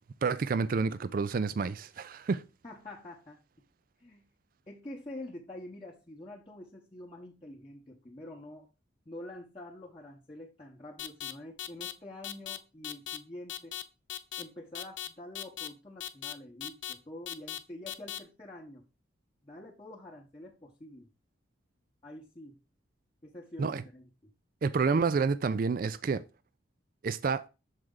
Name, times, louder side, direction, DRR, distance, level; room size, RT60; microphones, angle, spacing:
voice 1, 0.2-2.4 23.6-23.8 24.6-26.2 27.0-27.5, right 4 dB, 45° right, 0.3 m, -29 dB
voice 2, 2.6-3.4 4.0-4.3 4.7-8.7 9.1-13.8 14.4-18.8 19.4-21.1 22.0-22.6 23.2-24.3, left 1 dB, 25° left, 0.9 m, -47 dB
sound 1, 11.0-11.3 11.6-11.9 12.2-12.6 12.8-13.2 13.5-13.8 14.1-14.4 14.7-15.1 15.3-15.7 16.0-16.3 16.6-16.9 17.3-17.6 17.9-18.2, left 12 dB, 70° left, 0.5 m, -38 dB
6.4 x 4.6 x 3.7 m
head